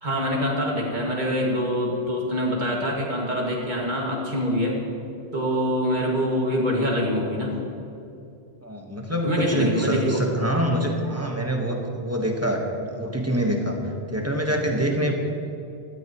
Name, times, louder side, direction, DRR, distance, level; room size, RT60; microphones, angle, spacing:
voice 1, 0.0-4.7 5.3-7.6 9.2-10.2 11.1-11.3, equal, 45° right, -2 dB, 2.2 m, -25 dB
voice 2, 8.6-12.6 12.9-13.8 14.1-15.1, equal, 15° right, 1 dB, 1.3 m, -25 dB
16.5 x 13.0 x 3.1 m, 2.6 s
omnidirectional pair, 1.1 m